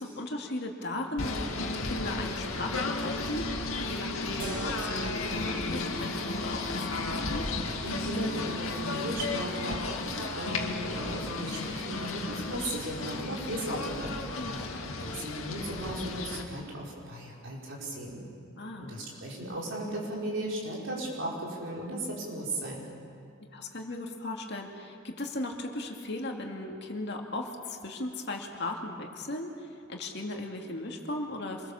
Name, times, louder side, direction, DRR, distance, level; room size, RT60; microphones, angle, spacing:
voice 1, 0.0-7.5 14.4-14.7 18.6-19.0 23.4-31.7, left 2 dB, 55° left, 2 dB, 2.4 m, -37 dB
Singing / Bird, 1.2-16.4, left 3 dB, 90° left, 2.2 m, -34 dB
sound 1, 4.4-11.4, right 3 dB, 45° right, 2.0 m, -48 dB
voice 2, 7.8-14.4 14.8-18.2 18.8-22.8, right 1 dB, 65° right, -3 dB, 5.8 m, -36 dB
27.0 x 22.5 x 7.2 m, 2.4 s
head